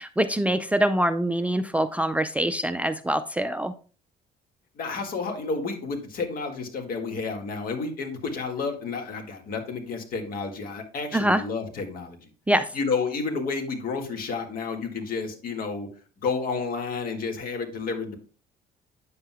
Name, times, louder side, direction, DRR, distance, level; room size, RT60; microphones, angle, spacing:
voice 1, 0.0-3.7 11.1-11.4 12.5-12.7, right 1 dB, 10° right, 10 dB, 0.4 m, -24 dB
voice 2, 4.7-12.2 12.7-15.9 16.2-18.2, left 4 dB, 60° left, 4 dB, 1.8 m, -30 dB
9.1 x 7.5 x 2.2 m, 0.37 s
cardioid pair, 110°, 17 cm